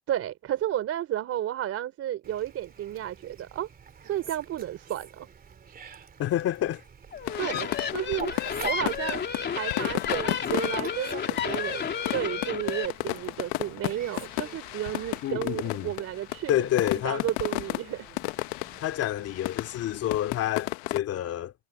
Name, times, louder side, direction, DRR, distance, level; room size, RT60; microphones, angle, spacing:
voice 1, 0.1-3.7 4.0-5.3 7.4-8.3 8.6-9.2 9.5-16.7 17.0-18.1, right 12 dB, 45° right, 3.7 m, -32 dB
Fowl, 2.2-20.2, right 6 dB, 25° right, 3.2 m, -47 dB
voice 2, 6.2-6.8 7.5-7.7 15.2-15.9 16.5-17.3 18.8-21.5, left 12 dB, 50° left, 2.8 m, -28 dB
sound 1, 7.1-12.9, left 7 dB, 30° left, 3.1 m, -32 dB
sound 2, 7.3-21.0, left 23 dB, 75° left, 1.3 m, -33 dB
supercardioid pair, 115°, 32 cm